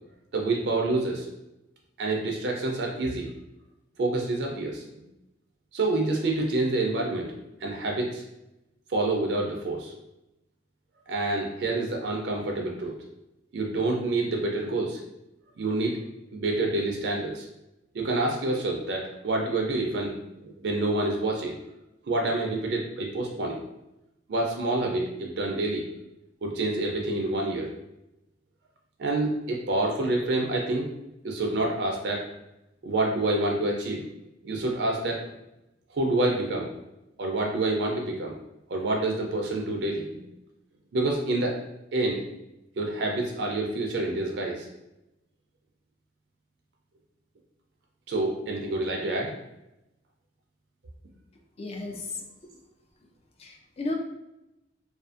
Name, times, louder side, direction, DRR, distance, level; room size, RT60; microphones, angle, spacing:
voice 1, 0.3-1.3 2.0-3.3 4.0-5.0 5.7-7.3 7.6-8.2 8.9-9.9 11.1-12.9 13.5-15.0 15.6-16.0 16.3-17.5 17.9-21.5 22.1-23.6 24.3-25.9 26.4-27.7 29.0-30.9 31.2-32.2 32.8-34.0 34.4-35.2 35.9-36.7 37.2-38.3 38.7-40.2 40.9-41.5 41.9-42.2 42.8-44.7 48.1-49.3, right 2 dB, 65° right, 0 dB, 0.4 m, -27 dB
voice 2, 51.6-52.2 53.4-54.0, left 2 dB, 35° left, 2 dB, 0.4 m, -34 dB
2.4 x 2.4 x 2.4 m, 0.91 s
head